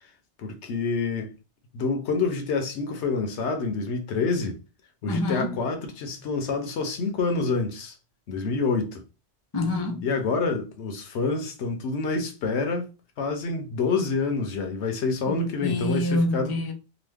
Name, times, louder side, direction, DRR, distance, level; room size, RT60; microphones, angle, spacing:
voice 1, 0.4-1.3 1.7-4.6 5.0-7.9 8.3-9.0 10.0-12.9 13.2-16.5, left 4 dB, 75° left, 0.9 m, -27 dB
voice 2, 5.1-5.6 9.5-10.1 15.3-16.7, left 2 dB, 30° left, 0.5 m, -27 dB
2.9 x 2.1 x 3.3 m
omnidirectional pair, 1.2 m